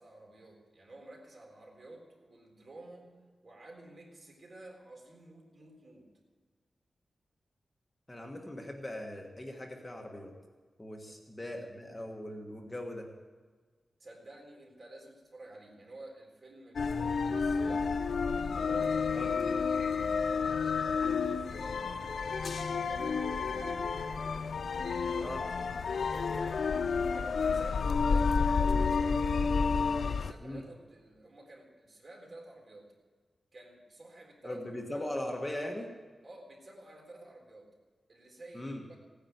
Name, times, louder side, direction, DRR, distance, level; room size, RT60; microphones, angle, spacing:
voice 1, 0.0-3.1 3.4-6.1 11.1-11.2 14.0-17.9 18.2-19.7 20.1-23.9 24.7-25.9 26.3-26.7 27.1-29.2 29.5-32.9 33.5-35.1 36.2-37.7 38.1-39.0, right 2 dB, 45° right, 1 dB, 3.8 m, -52 dB
voice 2, 8.1-10.3 10.8-13.1 19.1-19.3 25.2-25.4 30.4-30.6 34.4-35.9 38.5-38.8, left 1 dB, 15° left, 1 dB, 1.5 m, -39 dB
sound 1, 16.8-30.3, left 5 dB, 65° left, 0.5 m, -30 dB
16.5 x 10.0 x 8.0 m, 1.5 s
wide cardioid pair, 145°, 0 cm